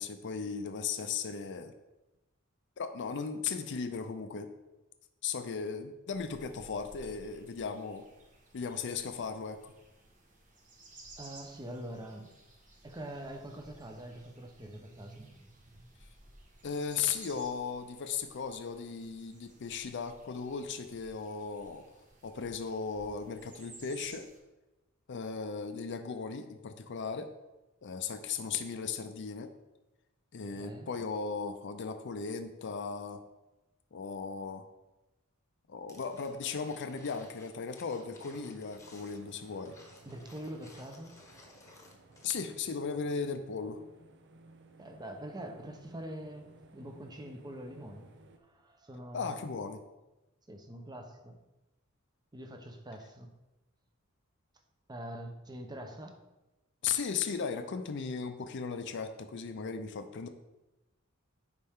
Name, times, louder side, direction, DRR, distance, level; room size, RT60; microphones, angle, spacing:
voice 1, 0.0-1.7 2.8-4.5 5.2-8.0 8.5-9.7 16.6-21.8 22.2-24.3 25.1-27.3 27.8-29.5 30.3-33.2 33.9-34.7 35.7-39.7 42.2-43.8 49.1-49.8 56.8-60.3, left 5 dB, 60° left, 7 dB, 0.5 m, -36 dB
sound 1, 6.1-24.4, right 2 dB, 40° right, 1.3 m, -57 dB
voice 2, 11.2-12.3 12.8-15.9 30.4-30.9 40.0-41.2 44.8-48.1 48.4-49.4 50.5-51.4 52.3-53.3 54.9-56.2, right 1 dB, 20° right, 4 dB, 0.8 m, -44 dB
sound 2, 35.9-42.5 42.8-42.9, left 2 dB, 15° left, 1.1 m, -57 dB
sound 3, 38.0-48.4, right 2 dB, 60° right, 0.7 m, -58 dB
9.8 x 4.4 x 3.6 m, 1.0 s
head